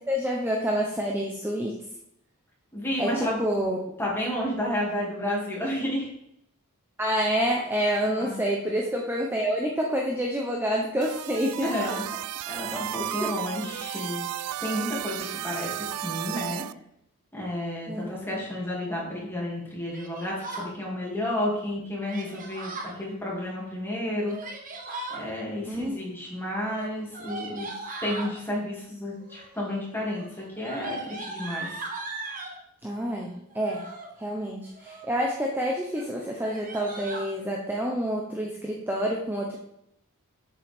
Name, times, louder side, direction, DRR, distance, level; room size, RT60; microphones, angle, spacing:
voice 1, 0.1-1.7 3.0-3.8 7.0-11.9 12.7-12.8 13.2-13.4 17.9-18.2 25.7-26.0 32.8-33.9 34.2-39.6, equal, 10° right, -1 dB, 0.7 m, -28 dB
voice 2, 2.7-3.4 4.0-6.1 8.2-8.4 11.6-12.0 12.5-14.3 14.6-16.6 17.3-24.4 25.1-31.9, left 1 dB, 10° left, -4 dB, 2.5 m, -31 dB
sound 1, 11.0-16.7, right 13 dB, 90° right, 0.3 m, -34 dB
Yell, 19.9-20.7 22.1-23.0 24.1-25.2 26.5-28.3 29.2-29.6 29.9-32.6 33.5-34.1 34.6-35.2 35.5-35.7 35.9-36.1 36.4-37.3, right 2 dB, 40° right, 1.3 m, -38 dB
7.6 x 7.5 x 3.5 m, 0.78 s
head